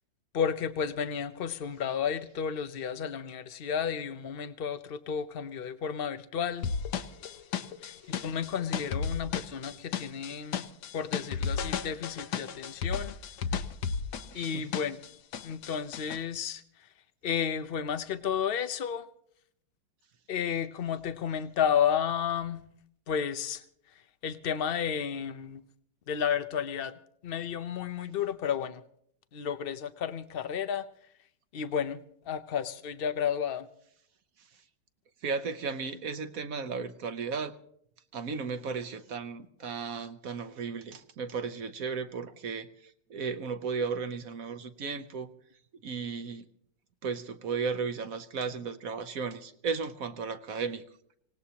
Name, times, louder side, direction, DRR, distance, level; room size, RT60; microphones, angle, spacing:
voice 1, 0.3-6.7 7.8-10.7 10.9-13.2 14.3-15.0 15.4-16.9 17.2-19.1 20.3-22.6 23.1-23.6 24.2-25.6 26.1-28.8 29.3-30.9 31.5-33.7, left 8 dB, 85° left, 12 dB, 0.5 m, -32 dB
sound 1, 6.6-15.1 15.3-16.2, left 6 dB, 70° left, 1.4 m, -33 dB
voice 2, 14.3-14.6 35.2-37.5 38.1-42.7 43.1-45.3 45.8-46.4 47.0-50.8, right 5 dB, 55° right, 10 dB, 1.2 m, -35 dB
25.5 x 18.5 x 2.9 m, 0.67 s
omnidirectional pair, 2.0 m